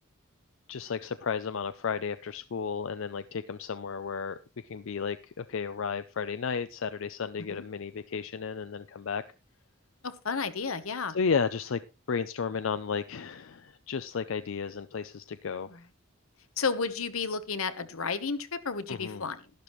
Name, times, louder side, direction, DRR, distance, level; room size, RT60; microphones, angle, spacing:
voice 1, 0.7-4.4 4.6-9.2 11.1-11.8 12.1-15.7 18.9-19.2, left 6 dB, 65° left, 12 dB, 0.5 m, -33 dB
voice 2, 10.0-11.2 15.7-15.8 16.6-19.4, left 5 dB, 85° left, 11 dB, 1.1 m, -32 dB
12.0 x 11.5 x 3.1 m, 0.30 s
head